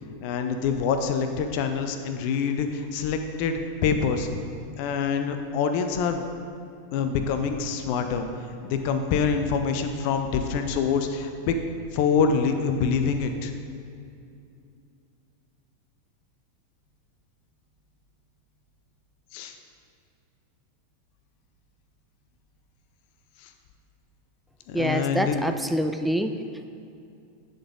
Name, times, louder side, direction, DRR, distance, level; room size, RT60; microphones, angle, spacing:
voice 1, 0.2-4.3 4.8-6.3 6.9-8.3 8.6-11.5 11.9-13.5 19.3-19.5 24.7-25.4, left 6 dB, 45° left, 7 dB, 0.6 m, -25 dB
voice 2, 24.7-26.3, equal, ahead, 7 dB, 0.3 m, -25 dB
11.0 x 4.0 x 3.7 m, 2.5 s
figure-of-eight pair, 90°, 0 cm